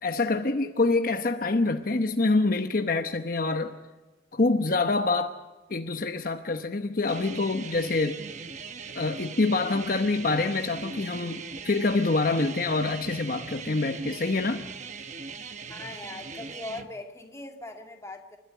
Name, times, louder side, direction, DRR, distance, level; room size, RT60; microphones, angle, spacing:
voice 1, 0.0-3.7 4.3-5.4 5.7-8.2 8.9-14.6, left 3 dB, 50° left, 0.9 m, -26 dB
sound 1, 7.1-16.9, right 4 dB, 40° right, 1.1 m, -40 dB
voice 2, 15.7-18.4, left 2 dB, 15° left, 2.3 m, -40 dB
29.0 x 13.0 x 8.9 m
head